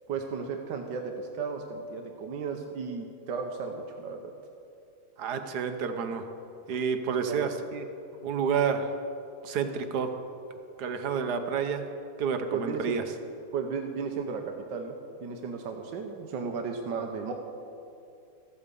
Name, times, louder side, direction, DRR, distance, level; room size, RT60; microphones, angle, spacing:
voice 1, 0.1-4.3 7.3-7.5 12.5-12.8 13.5-17.3, right 5 dB, 90° right, 3 dB, 1.5 m, -34 dB
voice 2, 5.2-6.3 6.7-7.9 8.1-8.9 9.4-10.1 10.8-11.9 12.2-13.0, right 6 dB, 70° right, 7 dB, 1.4 m, -29 dB
14.5 x 8.6 x 6.8 m, 2.6 s
omnidirectional pair, 1.8 m